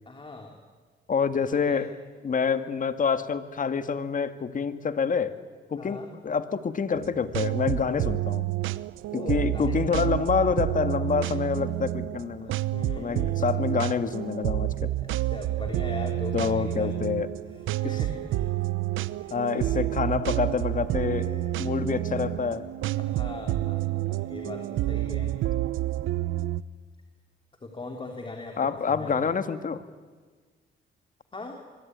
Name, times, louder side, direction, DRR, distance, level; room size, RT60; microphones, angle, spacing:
voice 1, 0.0-0.6 1.4-1.8 5.8-6.1 9.1-9.8 11.2-11.3 12.4-13.3 15.0-17.0 17.8-18.5 19.2-19.8 21.1-21.6 23.0-25.3 27.6-28.6 28.8-29.3 31.3-31.6, left 2 dB, 25° left, 3 dB, 3.4 m, -40 dB
voice 2, 1.1-1.9 2.2-5.3 5.7-8.4 9.1-12.5 13.0-14.9 16.3-17.3 17.8-18.0 19.3-21.3 21.6-22.6 28.6-29.8, left 6 dB, 40° left, 10 dB, 2.0 m, -27 dB
sound 1, 6.9-26.6, right 15 dB, 85° right, 0.8 m, -29 dB
26.5 x 23.5 x 9.6 m, 1.4 s
cardioid pair, 90°, 20 cm